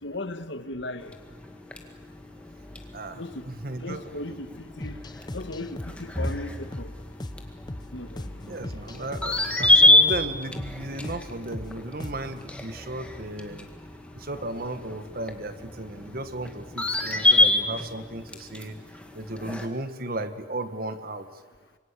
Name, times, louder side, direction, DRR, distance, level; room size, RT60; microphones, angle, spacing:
voice 1, 0.0-1.1 3.2-3.4 3.8-5.0 5.3-6.9 7.9-8.8, left 2 dB, 75° left, 9 dB, 1.7 m, -37 dB
sound 1, 1.0-19.7, left 2 dB, 5° left, 2.0 m, -27 dB
voice 2, 2.9-4.1 8.4-13.7 14.1-18.8 19.1-21.3, right 1 dB, 50° right, 10 dB, 1.5 m, -35 dB
sound 2, 4.8-12.5, left 1 dB, 25° left, 0.8 m, -39 dB
26.0 x 23.5 x 8.3 m, 1.5 s
head